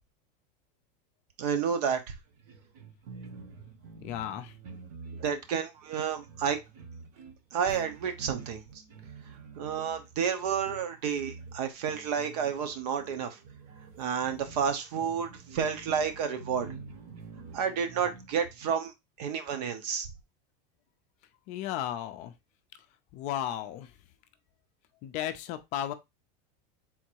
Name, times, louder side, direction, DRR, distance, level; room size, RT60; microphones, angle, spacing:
voice 1, 1.4-2.0 5.2-6.6 7.5-8.6 9.6-13.4 14.0-16.7 17.5-18.9 19.2-20.1, right 7 dB, 70° right, 1.0 m, -30 dB
sound 1, 2.3-18.7, right 4 dB, 50° right, 1.0 m, -48 dB
voice 2, 4.0-4.6 21.5-22.3 23.1-23.9 25.0-25.9, left 11 dB, 35° left, 0.4 m, -34 dB
3.7 x 2.6 x 4.5 m
supercardioid pair, 170°, 21 cm